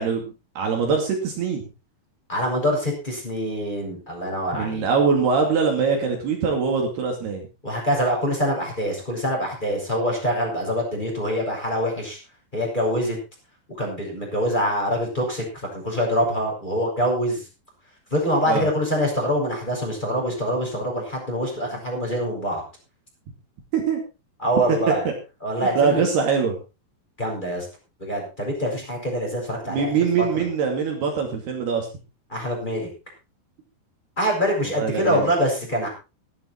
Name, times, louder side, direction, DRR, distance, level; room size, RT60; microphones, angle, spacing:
voice 1, 0.0-1.6 4.5-7.5 18.5-18.7 23.7-24.0 24.7-24.8 25.1-25.2 25.8-26.6 29.6-31.9 34.8-35.3, right 5 dB, 60° right, 2 dB, 4.3 m, -23 dB
voice 2, 2.3-4.9 7.6-12.2 12.5-13.2 13.7-17.5 18.1-22.6 24.4-25.1 25.4-26.0 27.2-27.7 28.0-30.3 32.3-32.9 34.2-35.9, equal, 10° left, -2 dB, 6.3 m, -25 dB
14.5 x 12.5 x 4.4 m, 0.30 s
omnidirectional pair, 5.4 m